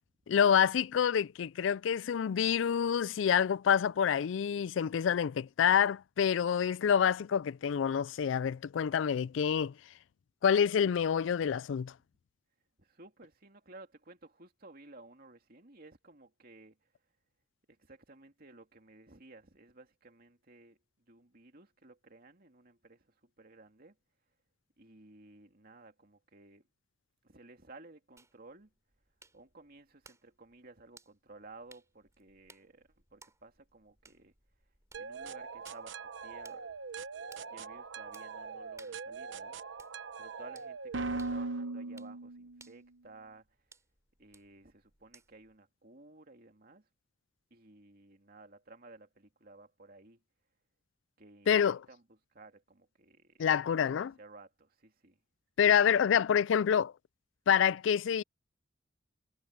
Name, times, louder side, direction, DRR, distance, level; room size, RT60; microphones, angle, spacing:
voice 1, 0.3-9.7 10.4-11.9 51.5-51.8 53.4-54.1 55.6-56.9 57.5-58.2, left 8 dB, 75° left, 0.3 m, -27 dB
voice 2, 12.8-16.8 17.7-20.8 21.1-24.0 24.8-26.7 27.2-28.7 29.3-34.3 35.0-36.7 37.4-39.5 40.2-43.5 44.2-46.9 47.5-50.2 51.2-55.2, right 2 dB, 50° right, 2.6 m, -55 dB
sound 1, 28.2-45.6, right 3 dB, 15° right, 3.0 m, -63 dB
sound 2, 34.9-42.7, right 3 dB, 70° right, 0.9 m, -41 dB
head